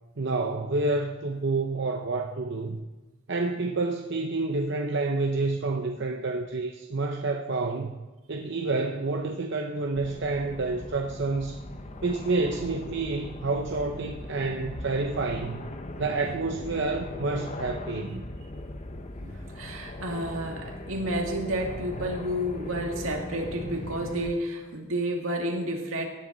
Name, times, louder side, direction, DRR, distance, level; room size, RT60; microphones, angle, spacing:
voice 1, 0.2-2.8 3.3-8.0 8.3-11.6 12.0-15.6 16.0-18.2, right 3 dB, 55° right, 3 dB, 0.8 m, -29 dB
sound 1, 9.9-24.3, left 1 dB, 35° left, 0.8 m, -39 dB
voice 2, 19.2-26.1, right 1 dB, 75° right, 2 dB, 2.2 m, -31 dB
17.5 x 10.5 x 4.0 m, 1.2 s
head